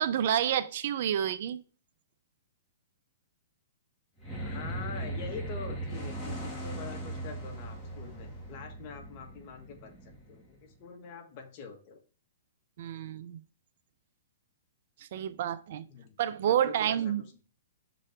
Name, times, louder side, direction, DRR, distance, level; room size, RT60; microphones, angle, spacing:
voice 1, 0.0-1.6 12.8-13.4 15.0-15.8 16.2-17.2, right 10 dB, 60° right, 0.5 m, -29 dB
sound 1, 4.2-10.8, right 1 dB, 10° left, 2.2 m, -39 dB
voice 2, 4.3-12.0 15.9-16.2 16.5-17.1, left 5 dB, 45° left, 1.6 m, -45 dB
6.5 x 4.1 x 3.6 m
hypercardioid pair, 130°, 0 cm